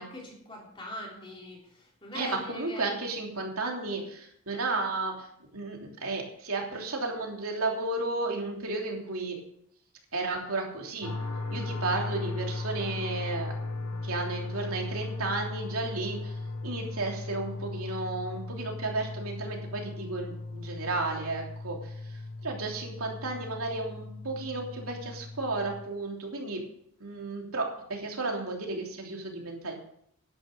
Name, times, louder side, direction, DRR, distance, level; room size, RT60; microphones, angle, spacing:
voice 1, 0.0-2.9, left 1 dB, 25° left, -2 dB, 3.6 m, -42 dB
voice 2, 2.1-5.3 5.5-9.4 10.1-11.1 11.5-26.6 27.0-29.7, right 3 dB, 75° right, 1 dB, 3.1 m, -33 dB
sound 1, 11.0-25.8, left 2 dB, 85° left, 1.8 m, -37 dB
11.0 x 10.0 x 6.7 m, 0.69 s
head